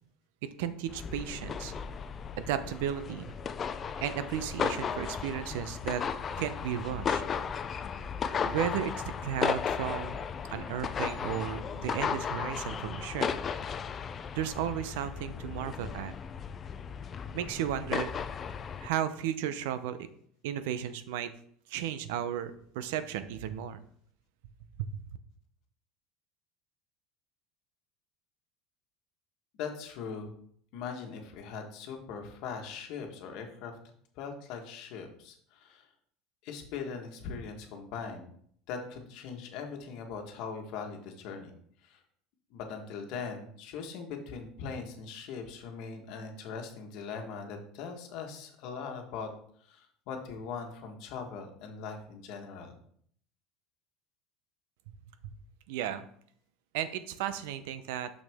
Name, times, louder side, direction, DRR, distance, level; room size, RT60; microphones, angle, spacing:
voice 1, 0.6-1.7 2.4-3.3 4.0-6.0 6.4-7.2 8.4-8.9 9.2-10.2 10.5-13.3 14.3-16.1 17.3-18.1 18.8-20.0 20.4-21.3 21.7-23.8 24.8-24.9 55.2-55.3 55.7-56.1 56.7-58.1, right 10 dB, 80° right, 12 dB, 0.6 m, -34 dB
sound 1, 0.9-18.9, left 6 dB, 25° left, 0.3 m, -35 dB
voice 2, 29.6-30.3 30.7-33.7 34.1-35.8 36.4-38.3 38.7-41.6 41.8-42.0 42.5-49.3 49.6-52.8, left 5 dB, 60° left, 4 dB, 1.3 m, -40 dB
6.3 x 6.1 x 3.5 m, 0.63 s
cardioid pair, 150°, 0 cm